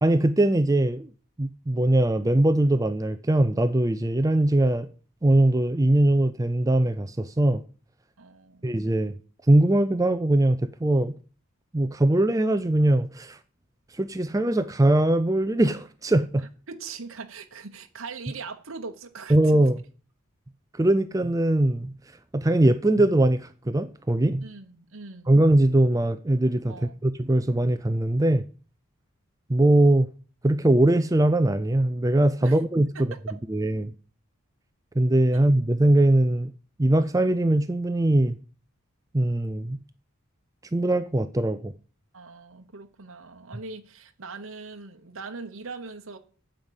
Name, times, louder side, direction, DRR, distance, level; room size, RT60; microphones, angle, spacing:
voice 1, 0.0-1.1 1.4-4.9 5.2-7.6 8.6-9.2 9.5-11.2 11.7-13.4 13.9-16.4 19.3-19.8 20.7-21.9 22.3-24.4 25.3-28.4 29.5-30.1 30.4-33.1 33.5-33.9 35.0-36.5 36.8-38.4 39.1-39.8 40.7-41.7, right 1 dB, 15° right, 0.4 m, -21 dB
voice 2, 8.2-8.7 16.7-19.6 24.4-25.3 26.7-26.9 32.4-32.6 33.3-33.4 35.3-35.4 42.1-46.2, right 4 dB, 65° right, 1.1 m, -40 dB
9.0 x 8.0 x 7.3 m
head